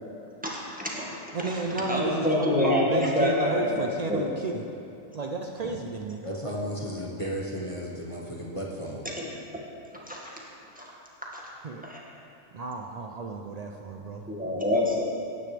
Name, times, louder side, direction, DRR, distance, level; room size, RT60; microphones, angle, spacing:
voice 1, 0.4-1.6 1.9-4.2 9.1-9.6 9.9-10.3 10.8-10.9 11.2-11.4 11.8-12.0 14.3-15.0, left 1 dB, 5° right, -5 dB, 1.8 m, -27 dB
voice 2, 1.3-4.6 5.1-6.2 11.6-11.8 12.5-14.2, right 3 dB, 65° right, 2 dB, 0.4 m, -32 dB
voice 3, 6.2-9.0, equal, 25° left, -4 dB, 1.3 m, -34 dB
17.5 x 9.3 x 3.4 m, 2.7 s
omnidirectional pair, 1.4 m